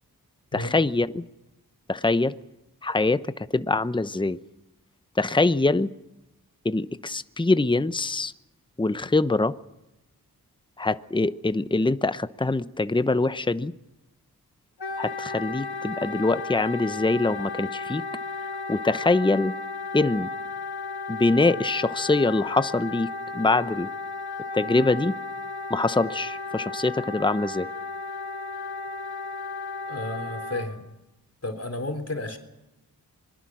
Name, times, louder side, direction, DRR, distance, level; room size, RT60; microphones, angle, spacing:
voice 1, 0.5-1.2 1.9-2.3 2.8-4.4 5.2-5.9 6.6-8.3 8.8-9.5 10.8-13.7 15.0-18.0 18.7-19.5 19.9-20.3 21.1-23.9 24.5-25.2 25.7-27.7, left 2 dB, 15° left, 13 dB, 0.9 m, -24 dB
Wind instrument woodwind instrument, 14.8-30.7, left 3 dB, 85° left, 2.2 m, -34 dB
voice 2, 29.9-30.8 31.4-32.4, left 2 dB, 40° left, 6 dB, 3.8 m, -32 dB
26.0 x 21.0 x 6.3 m, 0.92 s
cardioid pair, 40°, 38 cm